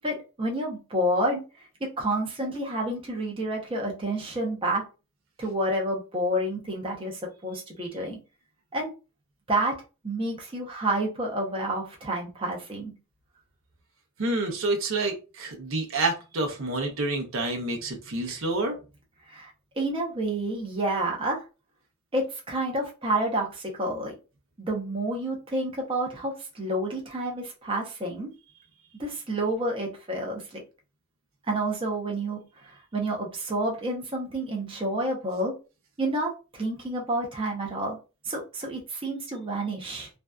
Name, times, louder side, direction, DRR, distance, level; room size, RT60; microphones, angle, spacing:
voice 1, 0.0-1.4 2.0-4.8 5.4-8.2 8.7-8.9 9.5-9.7 10.0-12.9 19.3-19.5 19.8-21.4 22.1-24.2 24.6-28.3 29.0-30.6 31.5-35.5 36.0-38.0 38.2-40.1, right 1 dB, 25° right, -1 dB, 0.6 m, -29 dB
voice 2, 14.2-18.8, right 2 dB, 65° right, 2 dB, 0.6 m, -28 dB
2.5 x 2.2 x 2.2 m, 0.31 s
head